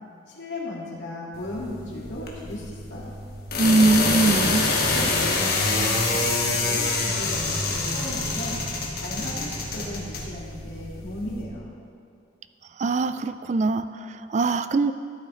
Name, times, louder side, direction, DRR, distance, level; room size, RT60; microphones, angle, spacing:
voice 1, 0.3-3.2 4.7-11.7, left 1 dB, 85° left, -4 dB, 2.0 m, -36 dB
sound 1, 1.3-11.4, left 3 dB, 55° left, 1.4 m, -26 dB
voice 2, 3.6-4.7 12.8-14.9, right 3 dB, 40° right, 12 dB, 0.3 m, -22 dB
13.0 x 8.3 x 3.8 m, 2.3 s
head